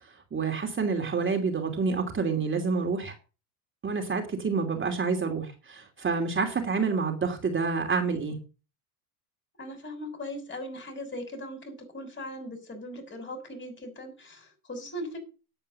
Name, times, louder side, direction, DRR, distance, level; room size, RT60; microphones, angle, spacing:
voice 1, 0.3-3.1 3.8-8.4, right 4 dB, 25° right, 4 dB, 2.9 m, -28 dB
voice 2, 9.6-15.2, left 1 dB, 25° left, 6 dB, 6.4 m, -39 dB
10.0 x 8.8 x 6.9 m, 0.33 s
supercardioid pair, 95°, 45 cm